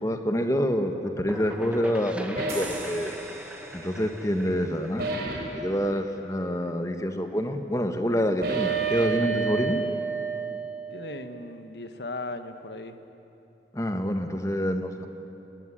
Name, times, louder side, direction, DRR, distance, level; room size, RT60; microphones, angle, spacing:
voice 1, 0.0-3.2 3.7-9.8 13.7-15.1, equal, 20° left, 6 dB, 1.4 m, -27 dB
sound 1, 0.8-6.4, right 1 dB, 5° right, 1.5 m, -41 dB
sound 2, 2.4-2.8 5.0-5.6 8.4-10.9, right 5 dB, 65° right, 4.0 m, -29 dB
sound 3, 2.5-7.4 7.9-8.1, right 2 dB, 35° right, 5.1 m, -45 dB
voice 2, 10.9-13.0, left 2 dB, 75° left, 8 dB, 1.4 m, -37 dB
22.5 x 19.5 x 10.0 m, 2.8 s
head